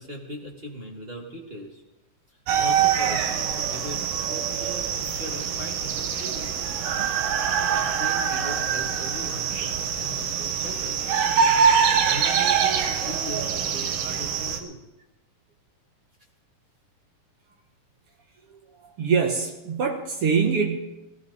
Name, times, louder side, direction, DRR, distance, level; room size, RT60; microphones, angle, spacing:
voice 1, 0.0-1.8 2.6-4.0 4.3-6.5 7.7-11.0 12.1-14.8, equal, 25° right, 0 dB, 1.6 m, -39 dB
sound 1, 2.5-14.6, right 7 dB, 80° right, 2.7 m, -24 dB
voice 2, 19.0-20.8, right 5 dB, 55° right, 3 dB, 1.8 m, -23 dB
19.5 x 14.5 x 4.1 m, 0.99 s
omnidirectional pair, 3.7 m